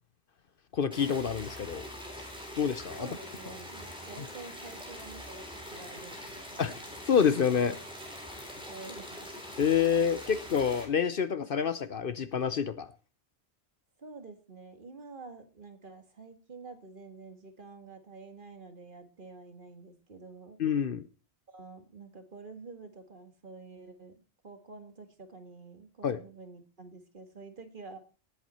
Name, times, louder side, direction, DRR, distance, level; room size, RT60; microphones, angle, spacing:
voice 1, 0.7-1.8 2.6-3.1 6.6-6.7 7.0-7.7 9.6-12.9 20.6-21.0 26.0-26.2, left 7 dB, 55° left, 0.9 m, -27 dB
sound 1, 0.9-10.9, equal, 5° right, 3.6 m, -44 dB
voice 2, 3.0-6.6 7.7-7.8 8.5-9.4 14.0-20.6 21.5-24.2 24.4-28.0, right 3 dB, 50° right, 1.9 m, -48 dB
18.0 x 7.9 x 4.3 m
omnidirectional pair, 1.2 m